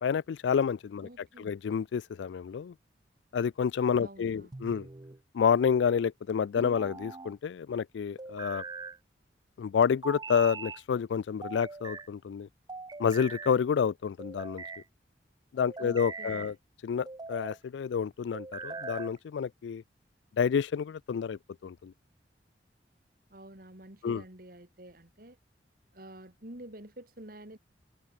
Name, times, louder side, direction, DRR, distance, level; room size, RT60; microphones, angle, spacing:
voice 1, 0.0-1.1 1.4-2.7 3.3-4.9 5.3-8.6 9.6-12.5 13.0-14.6 15.5-16.5 16.8-19.8 20.4-21.9 24.0-24.2, left 7 dB, 90° left, 0.3 m, -29 dB
voice 2, 1.0-1.5 4.0-4.5 15.8-16.5 23.3-25.4 25.9-27.6, right 1 dB, 55° right, 3.0 m, -49 dB
sound 1, 4.5-5.2 6.6-7.3 8.2-9.0 10.0-10.8 11.4-12.1 12.7-13.6 14.2-14.8 15.6-16.5 17.0-17.6 18.3-19.2, right 4 dB, 25° right, 0.5 m, -42 dB
head